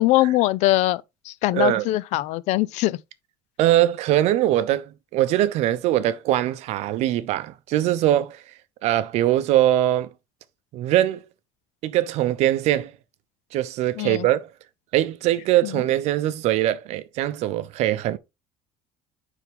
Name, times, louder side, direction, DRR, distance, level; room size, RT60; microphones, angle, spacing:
voice 1, 0.0-3.0 14.0-14.3 15.6-15.7, left 17 dB, 60° left, 0.4 m, -22 dB
voice 2, 1.5-1.9 3.6-8.4 8.8-10.1 10.7-11.2 11.8-12.9 13.5-14.5 14.9-18.2, right 13 dB, 60° right, 0.7 m, -22 dB
9.1 x 3.6 x 3.5 m
cardioid pair, 150°, 13 cm